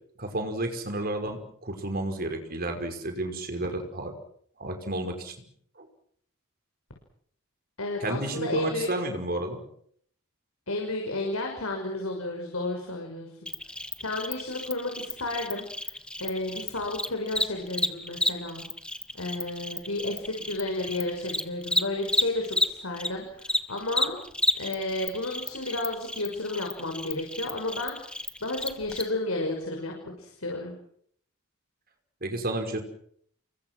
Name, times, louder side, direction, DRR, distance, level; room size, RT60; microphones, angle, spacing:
voice 1, 0.2-4.1 4.6-5.5 5.8-5.9 8.0-9.6 32.2-32.8, right 1 dB, 45° right, 5 dB, 5.4 m, -31 dB
voice 2, 7.8-8.9 10.7-13.5 14.0-15.9 16.2-18.6 19.1-24.2 24.6-28.0 28.4-30.8, left 2 dB, 80° left, 2 dB, 6.2 m, -32 dB
Cricket, 13.5-23.1 23.4-29.0, left 1 dB, 5° left, 1.7 m, -31 dB
29.0 x 24.0 x 6.3 m, 0.66 s
head